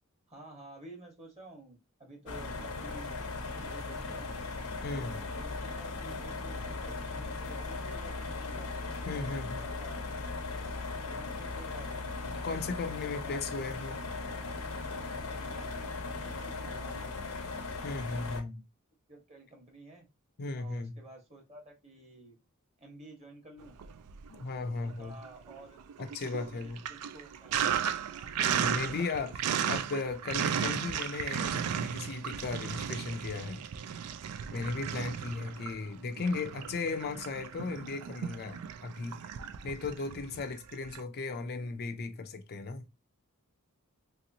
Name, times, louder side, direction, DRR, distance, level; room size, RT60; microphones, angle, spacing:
voice 1, 0.3-3.1 3.6-4.4 4.9-8.7 9.2-10.0 11.0-11.9 12.8-13.7 15.1-17.4 19.1-20.1 20.6-22.4 22.8-23.7 24.8-25.8 26.5-27.9 34.8-34.9, right 2 dB, 30° right, 1.2 m, -52 dB
sound 1, 2.3-18.4, left 3 dB, 85° left, 0.7 m, -38 dB
sound 2, 2.5-8.1, equal, 10° right, 0.8 m, -52 dB
voice 2, 4.8-5.1 9.1-9.6 12.4-14.0 17.8-18.6 20.4-21.0 24.3-25.1 26.0-26.8 28.4-33.6 34.5-39.2 39.6-42.8, left 3 dB, 45° left, 0.4 m, -36 dB
Sink (filling or washing), 23.7-24.6 24.9-41.0, right 8 dB, 90° right, 0.4 m, -35 dB
3.1 x 2.9 x 2.6 m
head